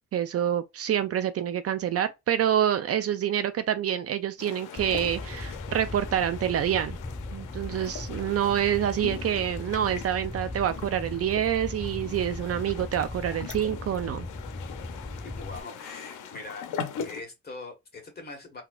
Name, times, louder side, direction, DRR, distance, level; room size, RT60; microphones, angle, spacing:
voice 1, 0.1-7.0 7.3-14.3, right 10 dB, 50° right, 0.5 m, -27 dB
sound 1, 4.4-17.2, left 7 dB, 85° left, 0.7 m, -41 dB
Fire, 4.8-15.6, left 2 dB, 10° left, 0.3 m, -38 dB
voice 2, 15.1-16.7 17.0-18.6, left 3 dB, 30° left, 1.6 m, -42 dB
3.9 x 2.8 x 2.4 m
cardioid pair, 90°, 30 cm